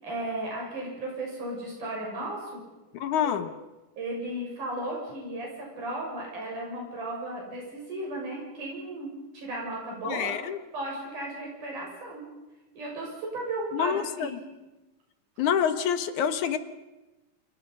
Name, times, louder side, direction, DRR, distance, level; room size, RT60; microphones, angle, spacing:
voice 1, 0.0-2.6 3.2-3.4 4.0-10.3 10.7-12.3 12.7-14.4, right 1 dB, 85° right, -2 dB, 8.5 m, -35 dB
voice 2, 3.0-3.5 10.0-10.6 13.7-14.4 15.4-16.6, left 8 dB, 75° left, 10 dB, 2.7 m, -27 dB
29.0 x 29.0 x 5.6 m, 1.1 s
omnidirectional pair, 3.5 m